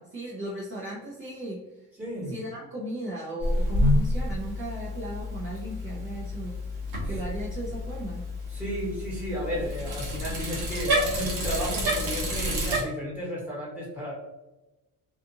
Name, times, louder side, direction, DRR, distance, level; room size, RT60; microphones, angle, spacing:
voice 1, 0.0-1.8 2.3-6.5 7.1-8.2, right 1 dB, 35° right, -5 dB, 0.6 m, -36 dB
voice 2, 2.0-2.3 8.5-14.1, equal, 5° right, -5 dB, 1.2 m, -33 dB
Bicycle, 3.4-12.8, equal, 70° right, 1.1 m, -29 dB
2.5 x 2.4 x 2.7 m, 0.99 s
cardioid pair, 120°, 38 cm